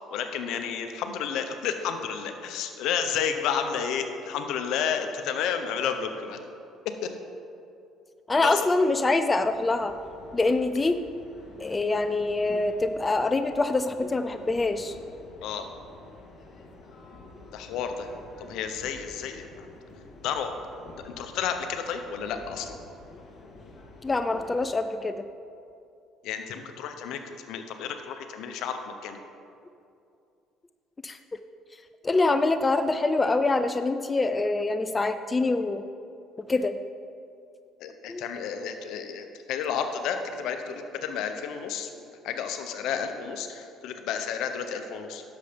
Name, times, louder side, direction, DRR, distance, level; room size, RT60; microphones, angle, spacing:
voice 1, 0.1-6.5 7.0-7.1 8.3-8.7 15.4-15.7 17.5-18.1 18.5-19.7 20.2-20.5 21.0-22.8 26.2-29.2 37.8-45.2, left 7 dB, 75° left, 7 dB, 0.9 m, -31 dB
voice 2, 8.3-9.9 10.3-11.0 11.6-15.0 24.0-25.3 31.0-31.2 32.0-35.8 36.4-36.8 38.1-38.2, left 2 dB, 20° left, 9 dB, 0.4 m, -25 dB
sound 1, 9.3-24.6, left 3 dB, 45° left, 1.7 m, -49 dB
11.0 x 7.0 x 5.2 m, 2.5 s
cardioid pair, 95°, 0 cm